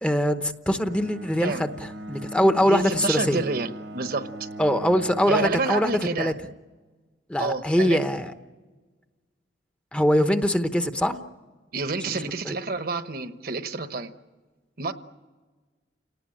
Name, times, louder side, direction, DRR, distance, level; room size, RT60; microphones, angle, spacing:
voice 1, 0.0-3.4 4.6-6.3 7.3-8.3 9.9-11.2 12.4-12.5, equal, 5° left, 8 dB, 0.9 m, -23 dB
Bowed string instrument, 0.8-5.7, right 1 dB, 80° right, 1.7 m, -39 dB
voice 2, 2.6-4.5 5.3-6.3 7.4-8.0 11.7-14.1 14.8-14.9, right 3 dB, 55° right, 10 dB, 1.1 m, -29 dB
29.5 x 18.5 x 8.8 m, 1.3 s
head